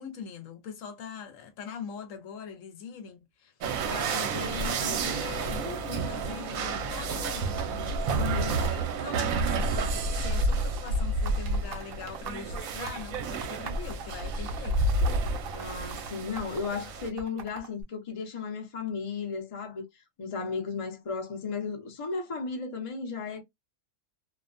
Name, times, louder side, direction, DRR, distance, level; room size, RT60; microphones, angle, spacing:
voice 1, 0.0-3.5 3.9-7.6 8.3-15.0, left 6 dB, 75° left, 1.0 m, -42 dB
sound 1, 3.6-17.1, right 3 dB, 80° right, 1.0 m, -30 dB
voice 2, 8.1-8.6 15.5-23.4, left 5 dB, 35° left, 0.5 m, -35 dB
sound 2, 10.1-16.7 17.2-17.8, right 5 dB, 55° right, 0.7 m, -42 dB
2.5 x 2.1 x 2.4 m
omnidirectional pair, 1.4 m